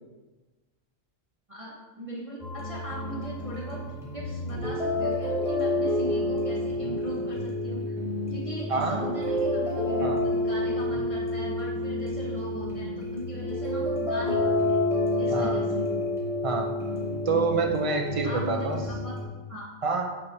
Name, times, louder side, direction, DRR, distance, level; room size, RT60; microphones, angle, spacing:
voice 1, 1.5-3.8 4.1-7.9 8.3-14.8 15.2-15.9 18.2-19.1 19.5-19.7, right 1 dB, 30° right, -5 dB, 0.7 m, -38 dB
sound 1, 2.4-19.2, left 1 dB, ahead, 1.1 m, -29 dB
voice 2, 8.7-9.1 10.0-10.2 15.3-15.6 16.4-16.7 17.3-18.8 19.8-20.0, right 4 dB, 55° right, 3 dB, 0.3 m, -27 dB
5.3 x 3.3 x 5.5 m, 1.2 s
omnidirectional pair, 1.4 m